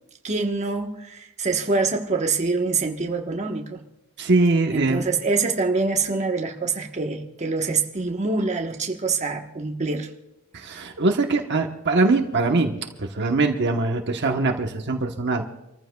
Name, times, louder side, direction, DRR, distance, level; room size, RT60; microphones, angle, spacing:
voice 1, 0.2-3.8 4.7-10.1, right 4 dB, 30° right, 2 dB, 1.2 m, -25 dB
voice 2, 4.2-5.0 10.5-15.4, right 3 dB, 55° right, 3 dB, 1.1 m, -22 dB
28.5 x 14.5 x 2.3 m, 0.93 s
head